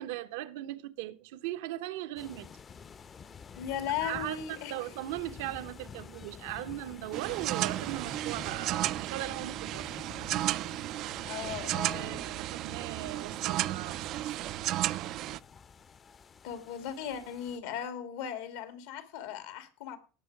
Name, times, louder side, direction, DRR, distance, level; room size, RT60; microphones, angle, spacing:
voice 1, 0.0-2.5 4.0-11.3 11.9-14.4, right 15 dB, 80° right, 1.1 m, -39 dB
sound 1, 2.2-17.6, left 6 dB, 35° left, 0.8 m, -50 dB
voice 2, 3.6-4.7 11.2-12.2 16.4-20.0, left 9 dB, 75° left, 2.4 m, -37 dB
sound 2, 7.1-15.4, right 15 dB, 60° right, 0.5 m, -33 dB
18.0 x 6.4 x 4.7 m
supercardioid pair, 90°, 0 cm